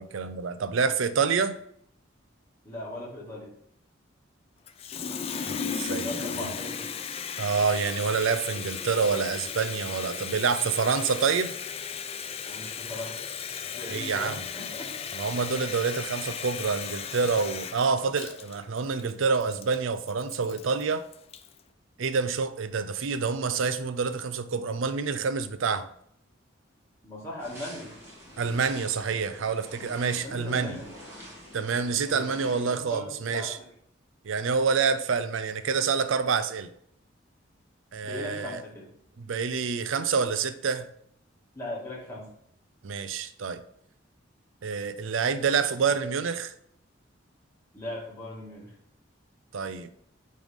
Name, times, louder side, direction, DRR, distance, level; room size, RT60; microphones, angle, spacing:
voice 1, 0.0-1.5 5.4-6.5 7.4-11.5 13.9-14.5 15.1-21.1 22.0-25.9 28.4-30.8 31.5-33.6 34.2-36.7 37.9-38.6 39.2-40.9 42.8-43.6 44.6-46.5 49.5-49.9, right 5 dB, 80° right, 0.5 m, -27 dB
voice 2, 2.6-3.5 5.9-6.9 12.4-13.1 13.7-14.9 27.0-27.9 30.2-31.0 32.0-33.7 38.0-38.9 41.5-42.3 47.7-48.7, left 1 dB, 15° left, 2.1 m, -39 dB
Water tap faucet, 4.7-21.6, left 6 dB, 30° left, 0.3 m, -36 dB
sound 1, 27.4-32.8, equal, 15° right, 2.0 m, -47 dB
9.0 x 3.2 x 3.6 m
head